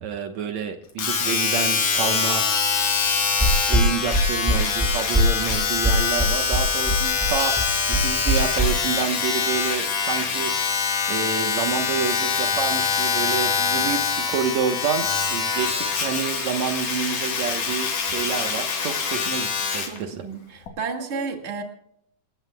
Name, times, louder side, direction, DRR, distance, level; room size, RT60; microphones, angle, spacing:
voice 1, 0.0-2.5 3.7-10.5 11.1-20.2, right 6 dB, 70° right, 5 dB, 2.3 m, -28 dB
Domestic sounds home sounds, 1.0-20.0 20.7-20.8, left 5 dB, 80° left, 4.2 m, -24 dB
sound 1, 3.4-8.7, equal, 5° right, 5.8 m, -21 dB
voice 2, 19.9-21.6, right 4 dB, 25° right, 3 dB, 1.8 m, -32 dB
28.0 x 15.5 x 2.3 m, 0.73 s
omnidirectional pair, 3.5 m